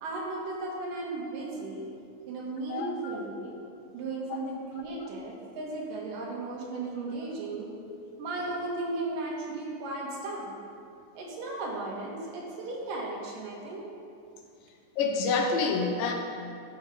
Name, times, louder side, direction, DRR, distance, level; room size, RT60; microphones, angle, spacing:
voice 1, 0.0-1.9 2.3-3.6 3.9-7.7 8.2-10.6 11.1-13.9, right 2 dB, 80° right, -2 dB, 3.2 m, -35 dB
voice 2, 2.7-3.2 15.0-16.1, left 4 dB, 90° left, 3 dB, 2.7 m, -27 dB
11.5 x 7.2 x 4.9 m, 2.4 s
omnidirectional pair, 3.8 m